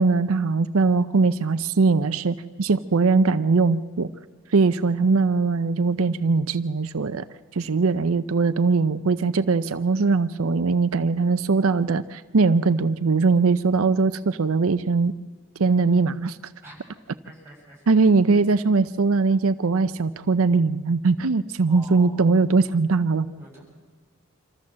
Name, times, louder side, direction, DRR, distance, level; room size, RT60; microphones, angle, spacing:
voice 1, 0.0-4.1 4.5-7.2 7.5-15.1 15.6-16.4 17.9-23.3, right 4 dB, 85° right, 11 dB, 0.6 m, -21 dB
voice 2, 17.2-17.8 21.7-22.3 23.4-23.6, right 1 dB, 10° right, -2 dB, 7.3 m, -45 dB
26.0 x 14.0 x 7.5 m, 1.5 s
head